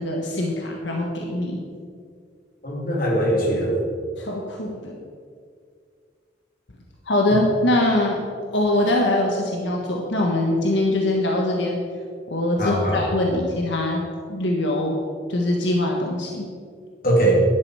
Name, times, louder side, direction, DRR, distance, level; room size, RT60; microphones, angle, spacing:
voice 1, 0.0-1.6 4.2-5.0 7.0-8.2 8.5-11.8 12.3-14.0 14.3-15.0 15.3-16.5, left 1 dB, 80° left, 0 dB, 1.4 m, -22 dB
voice 2, 2.6-3.8 12.6-13.1 17.0-17.3, right 1 dB, 50° left, -2 dB, 2.7 m, -21 dB
12.0 x 10.5 x 4.9 m, 2.1 s
head